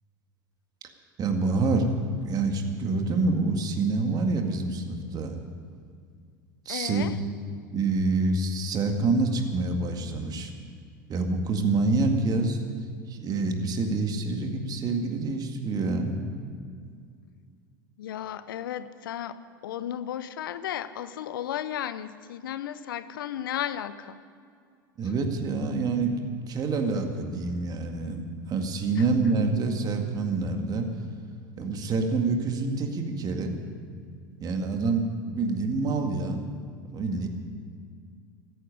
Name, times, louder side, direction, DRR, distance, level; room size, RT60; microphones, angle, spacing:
voice 1, 1.2-5.4 6.7-7.1 7.7-10.5 11.1-12.6 13.1-16.2 25.0-26.2 26.5-28.2 28.5-30.9 31.6-33.5 34.4-36.5 36.9-37.3, right 3 dB, 35° right, 4 dB, 2.0 m, -27 dB
voice 2, 6.7-7.2 18.0-24.2 28.9-29.0, left 10 dB, 75° left, 14 dB, 0.8 m, -34 dB
14.0 x 9.9 x 10.0 m, 2.2 s
hypercardioid pair, 90°, 11 cm